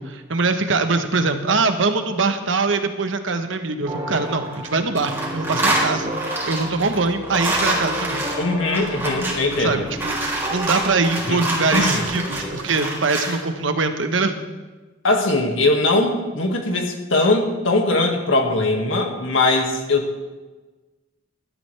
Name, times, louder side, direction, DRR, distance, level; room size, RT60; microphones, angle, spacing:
voice 1, 0.0-8.3 9.6-14.4, right 3 dB, 75° right, 7 dB, 1.1 m, -23 dB
sound 1, 3.9-4.7 5.0-13.4, right 1 dB, 10° right, 3.0 m, -26 dB
sound 2, 3.9-12.6, equal, 30° right, 2.5 m, -33 dB
voice 2, 8.4-9.8 11.2-11.4 11.7-12.1 15.0-20.2, left 2 dB, 85° left, 2 dB, 2.0 m, -20 dB
17.5 x 12.0 x 3.4 m, 1.3 s
head